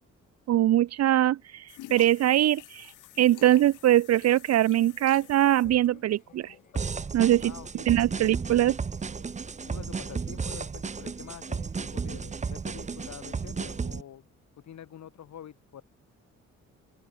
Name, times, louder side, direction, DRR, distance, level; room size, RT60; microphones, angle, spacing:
voice 1, 0.5-2.9 3.2-6.5 7.1-7.5 7.9-8.7, right 13 dB, 55° right, 0.6 m, -22 dB
sound 1, 1.7-7.5, left 15 dB, 85° left, 3.0 m, -49 dB
sound 2, 4.8-13.3, left 4 dB, 25° left, 7.4 m, -62 dB
sound 3, 6.7-14.0, right 5 dB, 25° right, 0.8 m, -34 dB
voice 2, 7.4-7.7 8.1-8.5 9.3-14.3 14.6-15.8, left 10 dB, 65° left, 7.8 m, -46 dB
open air
cardioid pair, 90°, 30 cm